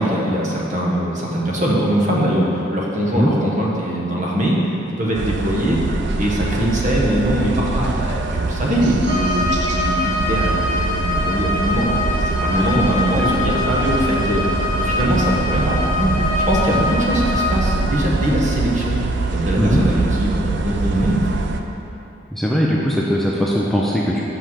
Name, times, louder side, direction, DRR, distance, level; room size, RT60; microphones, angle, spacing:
voice 1, 0.0-4.6 5.0-19.0 19.3-21.3, right 1 dB, 40° right, -3 dB, 1.1 m, -21 dB
sound 1, 5.1-21.6, right 3 dB, 65° right, 0.4 m, -24 dB
Bowed string instrument, 9.0-17.6, left 3 dB, 20° left, 1.1 m, -24 dB
voice 2, 22.3-24.2, equal, ahead, -4 dB, 0.5 m, -20 dB
6.1 x 5.2 x 5.6 m, 2.9 s
head